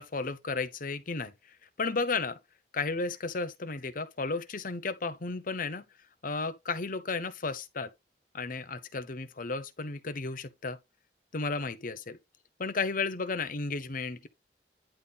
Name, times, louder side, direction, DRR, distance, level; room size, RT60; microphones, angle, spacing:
voice 1, 0.0-1.3 1.8-2.4 2.7-5.8 6.2-7.9 8.3-10.8 11.3-12.2 12.6-14.3, left 4 dB, 50° left, 0.9 m, -33 dB
10.0 x 3.6 x 4.1 m
head